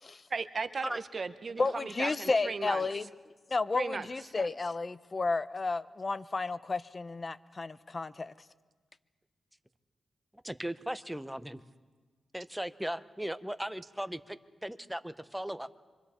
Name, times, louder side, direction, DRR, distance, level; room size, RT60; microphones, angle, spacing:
voice 1, 0.3-2.9 3.7-4.1, right 4 dB, 50° right, 11 dB, 0.9 m, -36 dB
voice 2, 1.6-3.1 3.5-8.3, left 3 dB, 35° left, 14 dB, 0.7 m, -32 dB
voice 3, 10.4-11.6 12.3-15.7, right 1 dB, 5° right, 12 dB, 0.8 m, -37 dB
26.5 x 25.5 x 4.4 m, 1.4 s
cardioid pair, 85°, 0 cm